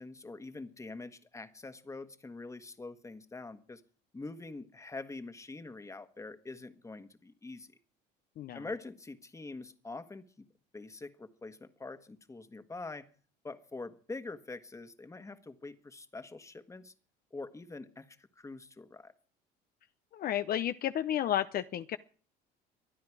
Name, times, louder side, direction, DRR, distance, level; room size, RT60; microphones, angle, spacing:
voice 1, 0.0-3.8 4.1-7.8 8.5-10.5 10.7-13.1 13.4-16.9 17.3-19.1, left 3 dB, 15° left, 10 dB, 1.5 m, -45 dB
voice 2, 20.1-22.0, left 11 dB, 50° left, 11 dB, 0.7 m, -32 dB
24.5 x 9.5 x 4.8 m, 0.41 s
supercardioid pair, 95°, 19 cm